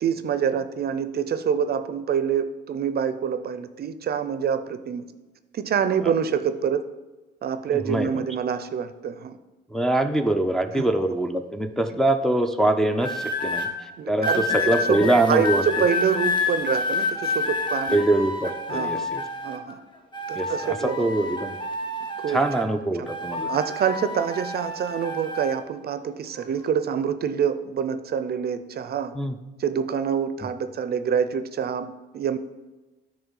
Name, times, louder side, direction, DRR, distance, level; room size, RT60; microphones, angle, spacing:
voice 1, 0.0-5.1 5.5-6.9 7.4-9.4 10.8-10.9 14.0-18.0 18.7-19.1 19.4-19.8 20.3-21.1 22.2-22.4 23.0-23.1 23.5-29.1 29.6-32.4, right 7 dB, 50° right, 11 dB, 0.5 m, -26 dB
voice 2, 7.9-8.2 9.7-13.7 14.1-15.6 17.9-19.2 20.4-21.6 22.3-23.5 29.2-29.3, right 1 dB, ahead, 4 dB, 0.5 m, -23 dB
sound 1, 13.0-13.7 14.2-19.7 20.1-22.8 23.1-25.6 26.4-26.6, left 3 dB, 25° left, 1.2 m, -29 dB
8.8 x 3.2 x 6.3 m, 1.1 s
cardioid pair, 90°, 20 cm